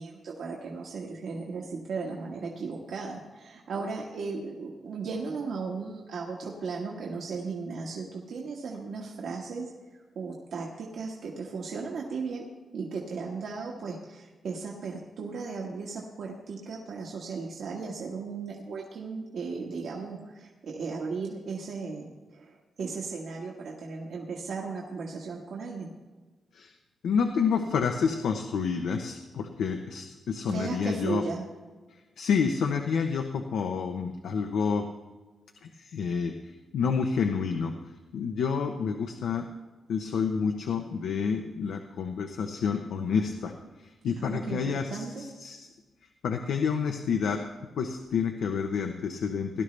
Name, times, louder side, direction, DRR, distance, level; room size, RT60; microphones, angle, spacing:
voice 1, 0.0-12.5 12.7-25.9 30.5-31.4 44.2-45.2, right 4 dB, 65° right, -2 dB, 1.5 m, -36 dB
voice 2, 27.0-31.2 32.2-34.9 35.8-36.3 36.7-37.7 38.1-39.5 39.9-43.5 44.0-45.7 46.2-47.4 47.8-49.6, left 6 dB, 90° left, 4 dB, 0.9 m, -29 dB
17.5 x 12.0 x 3.3 m, 1.3 s
wide cardioid pair, 165°, 0 cm